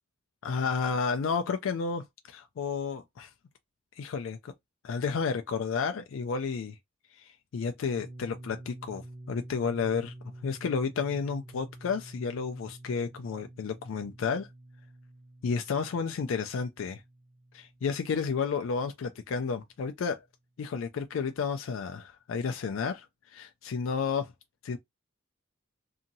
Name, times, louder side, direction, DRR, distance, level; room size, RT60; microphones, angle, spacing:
voice 1, 0.4-3.3 4.0-4.5 4.8-6.8 7.2-10.1 10.4-14.5 15.4-17.0 17.5-20.2 20.6-24.3 24.6-24.8, left 5 dB, 75° left, 0.4 m, -31 dB
sound 1, 7.9-19.6, right 1 dB, 45° right, 1.1 m, -49 dB
2.8 x 2.6 x 2.6 m
head